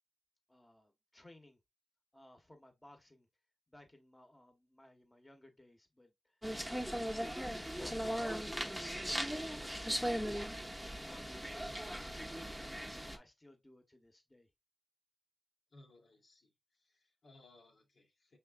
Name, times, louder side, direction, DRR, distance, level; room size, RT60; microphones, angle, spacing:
voice 1, 0.5-1.6 2.1-3.3 3.7-6.1 7.1-12.4 12.9-14.5, left 1 dB, 20° left, 1.2 m, -58 dB
sound 1, 6.4-13.2, equal, 5° right, 0.9 m, -38 dB
voice 2, 15.7-18.4, left 2 dB, 70° left, 1.4 m, -63 dB
5.2 x 3.5 x 2.5 m
cardioid pair, 45°, 0 cm